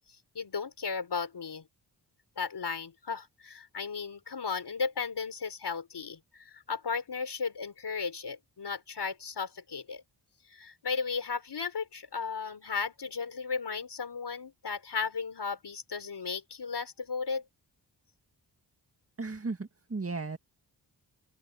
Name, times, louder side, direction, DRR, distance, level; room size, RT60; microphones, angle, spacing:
voice 1, 0.3-1.7 2.4-10.0 10.5-17.4, left 5 dB, 60° left, 4.0 m, -35 dB
voice 2, 19.2-20.4, right 3 dB, 30° right, 2.0 m, -35 dB
open air
cardioid pair, 45°, 45 cm